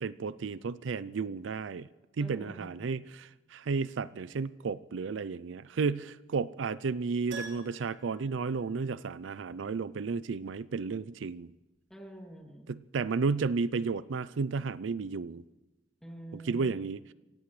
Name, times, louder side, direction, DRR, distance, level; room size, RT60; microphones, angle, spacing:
voice 1, 0.0-1.9 2.2-11.5 12.7-15.4 16.3-17.0, right 4 dB, 80° right, 17 dB, 0.4 m, -33 dB
voice 2, 2.2-2.9 11.9-12.8 16.0-16.8, right 1 dB, 5° left, 0 dB, 2.7 m, -47 dB
Keyboard (musical), 7.3-9.4 9.6-9.7 12.4-12.5 12.7-12.8, right 3 dB, 65° right, 3.9 m, -47 dB
25.5 x 16.5 x 3.2 m, 1.1 s
head